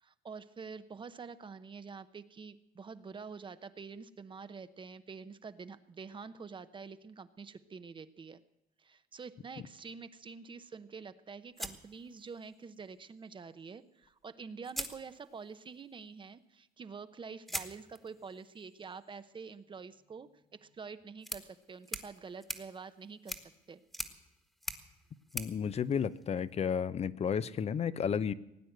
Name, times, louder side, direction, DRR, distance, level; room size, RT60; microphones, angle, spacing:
voice 1, 0.0-8.4 8.8-23.8, right 5 dB, 30° right, 12 dB, 0.8 m, -47 dB
sound 1, 11.6-12.7 14.0-14.1 14.6-15.7 17.5-26.7, equal, ahead, 1.4 m, -45 dB
voice 2, 25.3-28.3, left 7 dB, 40° left, 16 dB, 0.7 m, -32 dB
18.0 x 9.2 x 7.9 m, 0.88 s
cardioid pair, 110°, 17 cm